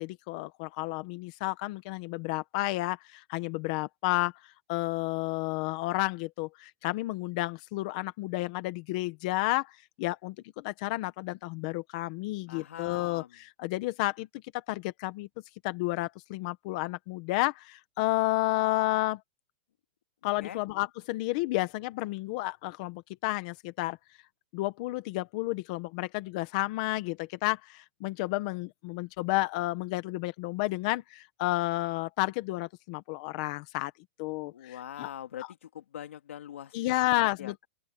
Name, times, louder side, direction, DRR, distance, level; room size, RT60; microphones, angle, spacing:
voice 1, 0.0-4.3 4.7-9.7 10.0-10.3 10.6-14.3 14.5-15.3 15.6-19.2 20.2-24.0 24.5-33.9 34.2-35.1 36.7-37.6, left 19 dB, 30° left, 1.0 m, -31 dB
voice 2, 12.5-13.4 20.2-20.6 34.5-37.7, left 10 dB, 80° left, 2.7 m, -43 dB
open air
supercardioid pair, 175°, 7 cm